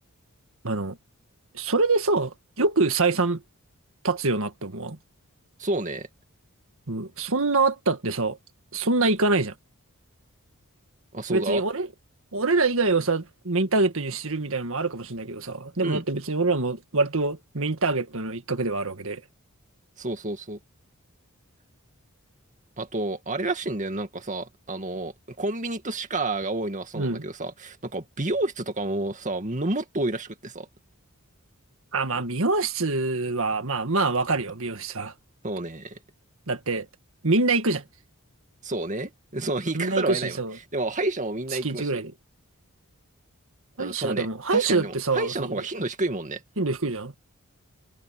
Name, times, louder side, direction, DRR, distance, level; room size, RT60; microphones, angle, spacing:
voice 1, 0.6-1.0 1.5-3.4 4.0-5.0 6.9-8.4 8.7-9.5 11.3-11.9 12.3-19.2 27.0-27.2 31.9-35.1 36.5-36.9 37.2-37.8 39.7-40.6 41.6-42.1 43.8-45.5 46.6-47.2, right 3 dB, 65° right, 1.9 m, -25 dB
voice 2, 5.6-6.1 11.1-11.6 15.8-16.0 20.0-20.6 22.8-30.7 35.4-36.0 38.6-40.4 40.7-42.0 43.8-44.3 44.5-46.4, right 2 dB, 35° right, 2.2 m, -30 dB
head